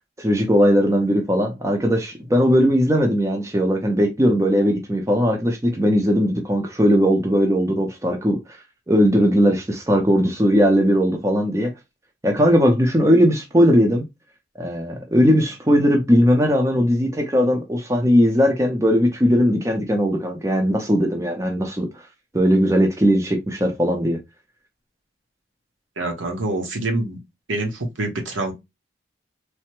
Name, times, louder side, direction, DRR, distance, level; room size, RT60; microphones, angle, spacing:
voice 1, 0.2-8.4 8.9-11.7 12.2-14.1 14.6-21.9 22.3-24.2, equal, 15° right, 0.5 m, -18 dB
voice 2, 26.0-27.2 27.5-28.5, right 2 dB, 75° right, 0.9 m, -26 dB
3.2 x 2.0 x 2.9 m
head